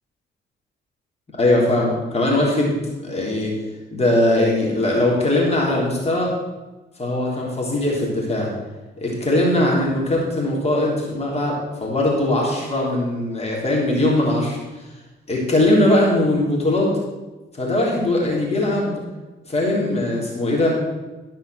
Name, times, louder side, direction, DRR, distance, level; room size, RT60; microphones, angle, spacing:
voice 1, 1.4-3.6 3.9-6.3 7.0-8.5 9.0-14.6 15.3-17.0 17.6-18.9 19.5-20.8, left 1 dB, 30° left, -3 dB, 3.6 m, -20 dB
14.0 x 5.5 x 6.5 m, 1.2 s
cardioid pair, 90°, 20 cm